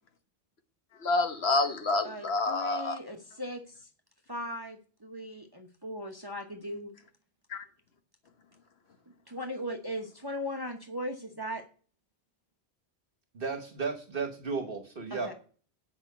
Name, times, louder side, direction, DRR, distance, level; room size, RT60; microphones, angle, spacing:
voice 1, 1.0-3.0 7.5-7.6, left 3 dB, 70° left, 7 dB, 1.5 m, -28 dB
voice 2, 2.0-3.6 4.3-6.9 9.3-11.6 15.1-15.3, equal, 20° right, 4 dB, 1.0 m, -38 dB
voice 3, 13.3-15.3, right 4 dB, 60° right, 6 dB, 1.3 m, -34 dB
8.9 x 5.7 x 8.0 m, 0.40 s
omnidirectional pair, 1.1 m